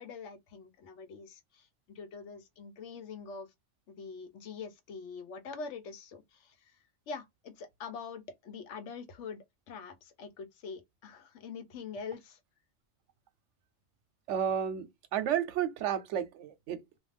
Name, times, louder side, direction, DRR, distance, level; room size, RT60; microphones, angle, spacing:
voice 1, 0.0-3.5 3.9-12.4, left 5 dB, 85° left, 1.0 m, -44 dB
voice 2, 14.3-17.0, right 9 dB, 85° right, 0.9 m, -32 dB
2.5 x 2.2 x 3.2 m
omnidirectional pair, 1.2 m